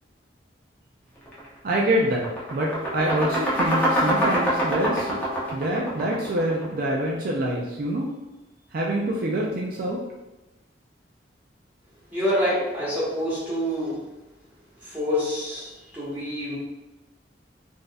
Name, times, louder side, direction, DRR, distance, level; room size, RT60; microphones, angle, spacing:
sound 1, 1.3-1.5 1.8-6.8, equal, 10° left, 0.8 m, -25 dB
voice 1, 1.6-5.2 5.5-8.1 8.7-10.0, right 1 dB, 55° right, -2 dB, 0.4 m, -26 dB
voice 2, 12.1-14.1 14.8-16.6, equal, 10° right, -10 dB, 1.5 m, -27 dB
3.9 x 2.6 x 2.3 m, 1.1 s
head